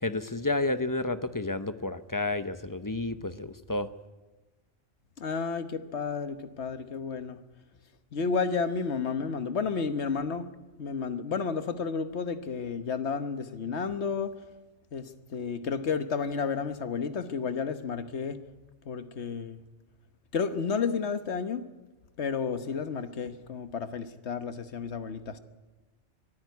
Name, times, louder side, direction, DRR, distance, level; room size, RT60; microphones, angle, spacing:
voice 1, 0.0-3.9, left 2 dB, 20° left, 11 dB, 0.6 m, -31 dB
voice 2, 5.2-7.4 8.1-10.5 10.8-14.3 14.9-18.4 18.9-19.6 20.3-21.6 22.2-25.4, left 5 dB, 65° left, 10 dB, 1.3 m, -31 dB
23.0 x 14.0 x 9.5 m, 1.2 s
omnidirectional pair, 1.2 m